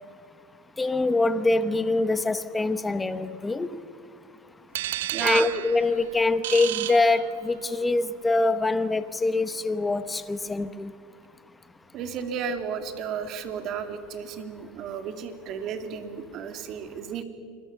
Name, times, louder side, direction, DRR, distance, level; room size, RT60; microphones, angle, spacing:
voice 1, 0.8-3.8 5.2-10.9, left 2 dB, 10° left, 12 dB, 0.9 m, -24 dB
sound 1, 4.7-7.8, right 15 dB, 85° right, 0.5 m, -33 dB
voice 2, 5.1-5.5 11.9-17.2, right 7 dB, 45° right, 7 dB, 2.5 m, -33 dB
26.5 x 22.0 x 6.9 m, 2.3 s
supercardioid pair, 125°, 0 cm